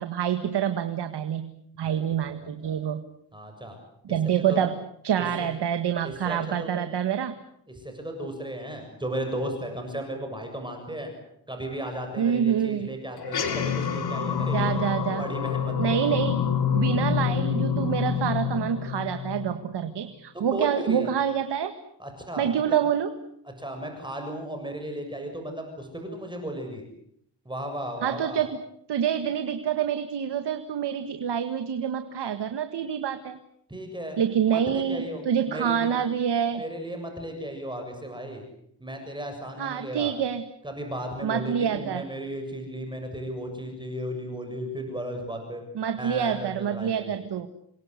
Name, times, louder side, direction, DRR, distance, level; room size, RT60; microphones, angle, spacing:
voice 1, 0.0-1.5 1.8-3.0 4.1-7.4 12.2-12.9 14.4-15.2 15.8-16.4 16.7-21.7 22.4-23.1 28.0-28.6 28.9-33.4 34.2-36.6 39.6-40.4 41.2-42.1 45.8-47.5, right 8 dB, 80° right, 9 dB, 1.8 m, -27 dB
voice 2, 2.3-2.8 3.3-3.8 4.5-4.6 5.2-5.5 6.0-6.7 7.7-11.1 11.5-14.7 15.2-16.2 20.3-21.1 22.0-22.8 23.5-26.8 27.5-28.5 33.7-34.2 34.5-35.2 35.5-36.0 36.5-38.4 38.8-40.1 40.6-45.6 46.0-47.2, right 1 dB, 10° right, 4 dB, 7.2 m, -35 dB
sound 1, 13.2-19.9, left 7 dB, 65° left, 3.8 m, -27 dB
28.5 x 23.0 x 8.1 m, 0.71 s
wide cardioid pair, 120°, 40 cm